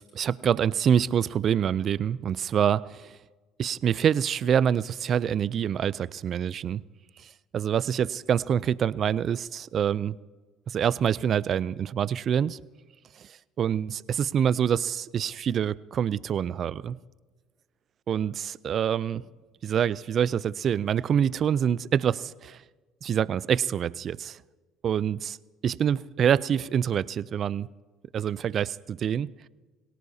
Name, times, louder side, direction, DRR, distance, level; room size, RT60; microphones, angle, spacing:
voice 1, 0.1-3.1 3.6-6.8 7.5-10.2 10.7-12.6 13.2-13.3 13.6-17.0 18.1-19.2 19.6-22.6 23.0-24.4 24.8-25.4 25.6-27.7 28.1-29.3, right 8 dB, 50° right, 19 dB, 0.5 m, -26 dB
23.0 x 17.5 x 2.8 m, 1.3 s
supercardioid pair, 80°, 0 cm